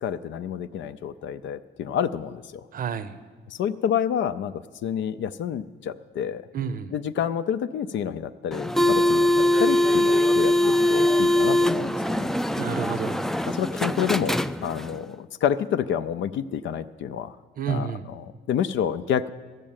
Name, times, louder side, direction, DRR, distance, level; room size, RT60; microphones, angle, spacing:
voice 1, 0.0-2.7 3.5-4.5 4.8-6.4 6.9-12.3 12.7-12.8 13.5-17.4 17.7-19.3, left 8 dB, 70° left, 10 dB, 0.5 m, -29 dB
voice 2, 2.7-3.2 6.5-6.9 12.6-13.2 17.6-18.1, right 7 dB, 45° right, 13 dB, 0.7 m, -30 dB
sound 1, 8.5-15.0, left 1 dB, ahead, 0.3 m, -22 dB
14.0 x 6.4 x 8.8 m, 1.4 s
cardioid pair, 90°, 20 cm